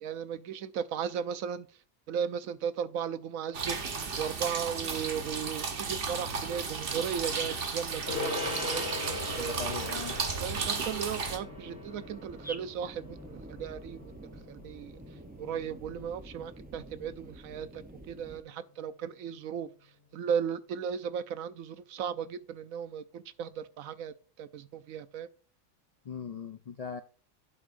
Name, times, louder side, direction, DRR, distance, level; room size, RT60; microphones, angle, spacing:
voice 1, 0.0-1.7 2.1-3.8 4.2-9.6 10.4-14.2 14.5-14.9 15.4-19.7 20.1-25.3, right 8 dB, 75° right, 1.1 m, -36 dB
sound 1, 3.5-11.4, right 5 dB, 45° right, 1.1 m, -34 dB
Gong, 8.1-17.8, left 3 dB, 50° left, 2.9 m, -41 dB
voice 2, 9.4-10.1 26.1-27.0, left 6 dB, 70° left, 0.3 m, -39 dB
sound 2, 11.3-18.4, right 1 dB, 15° right, 0.4 m, -48 dB
11.0 x 6.1 x 2.5 m
omnidirectional pair, 1.5 m